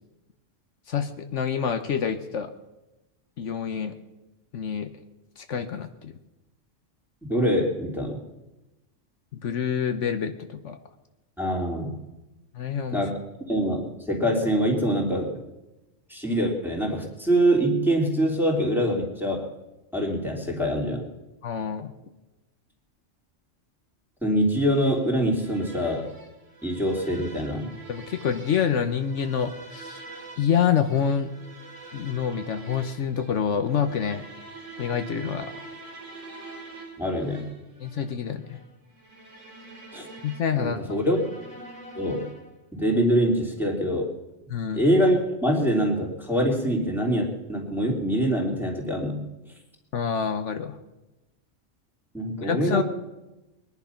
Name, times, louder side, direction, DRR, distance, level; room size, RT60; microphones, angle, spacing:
voice 1, 0.9-2.5 3.4-3.9 4.5-4.9 5.4-6.1 9.4-10.8 12.5-13.0 21.4-21.9 27.9-30.0 30.4-31.3 31.9-34.2 34.8-35.5 37.8-38.6 40.2-40.8 44.5-44.8 49.9-50.8 52.4-52.8, left 7 dB, 70° left, 8 dB, 1.2 m, -27 dB
voice 2, 7.3-8.2 11.4-11.9 12.9-13.1 13.5-15.4 16.1-19.5 19.9-21.1 24.2-26.1 26.6-27.7 37.0-37.5 39.9-40.0 40.6-41.2 41.9-42.3 42.7-44.1 44.7-49.2 52.1-52.8, equal, ahead, -2 dB, 3.0 m, -24 dB
sound 1, 24.6-42.6, right 3 dB, 80° right, 2.6 m, -45 dB
22.0 x 10.5 x 5.8 m, 1.0 s
omnidirectional pair, 1.3 m